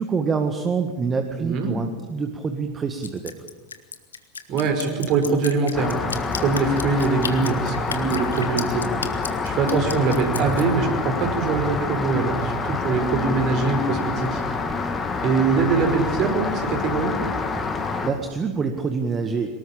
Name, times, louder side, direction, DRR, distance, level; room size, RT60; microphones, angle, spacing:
voice 1, 0.0-3.3 18.0-19.5, right 5 dB, 20° right, 6 dB, 1.7 m, -26 dB
voice 2, 1.4-1.7 4.5-6.0 6.4-8.8 9.4-14.4 15.2-17.1, right 4 dB, 40° right, 5 dB, 5.0 m, -23 dB
Drip, 3.0-10.6, left 6 dB, 75° left, 1.7 m, -33 dB
Rain, 5.7-18.1, left 4 dB, 20° left, 2.8 m, -27 dB
23.5 x 20.0 x 8.7 m, 1.3 s
figure-of-eight pair, 80°, 0 cm